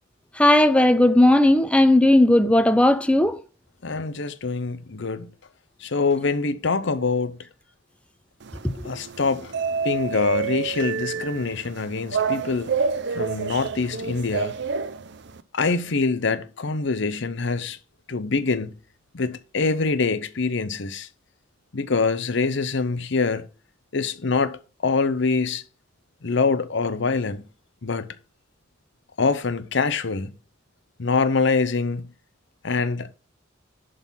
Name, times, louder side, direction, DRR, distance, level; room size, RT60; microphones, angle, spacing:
voice 1, 0.4-3.4, left 1 dB, 5° left, 0.7 m, -16 dB
voice 2, 3.8-5.3 5.8-7.4 8.8-9.5 9.8-12.7 13.1-14.6 15.5-17.8 18.1-18.8 19.1-21.1 21.7-23.5 23.9-25.6 26.2-27.5 27.8-28.1 29.2-30.3 31.0-32.1 32.6-33.1, left 4 dB, 65° left, 0.8 m, -24 dB
sound 1, 8.4-15.4, right 5 dB, 60° right, 0.6 m, -29 dB
11.0 x 4.0 x 5.7 m
head